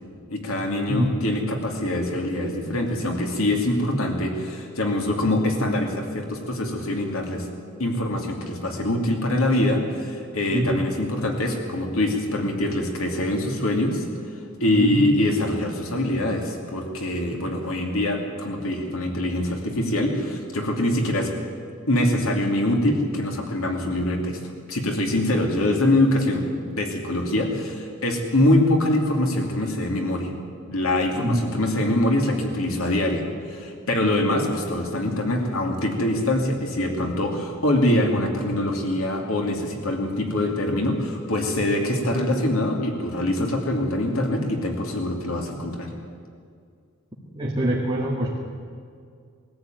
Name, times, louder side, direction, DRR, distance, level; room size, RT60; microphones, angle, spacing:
voice 1, 0.3-7.5 7.8-14.0 14.6-21.3 21.9-24.4 24.7-30.3 30.7-33.2 33.5-45.9, left 1 dB, 85° left, 2 dB, 2.7 m, -24 dB
voice 2, 14.8-15.1 31.2-31.4 47.3-48.4, right 1 dB, 20° right, -3 dB, 2.0 m, -24 dB
21.0 x 14.0 x 9.2 m, 2.2 s
head